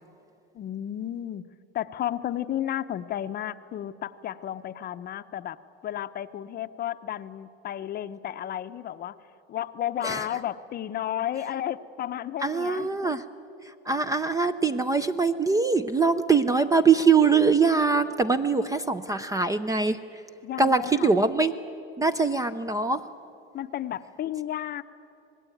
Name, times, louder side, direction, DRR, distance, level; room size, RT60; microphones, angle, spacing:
voice 1, 0.5-1.4 1.7-9.2 9.5-12.9 18.5-18.6 20.4-21.1 23.5-24.8, left 11 dB, 35° left, 11 dB, 0.7 m, -33 dB
voice 2, 12.4-13.2 13.6-20.0 20.6-21.5 22.0-23.1, right 4 dB, 10° right, 12 dB, 0.5 m, -23 dB
25.5 x 19.5 x 9.2 m, 2.8 s
supercardioid pair, 135°, 29 cm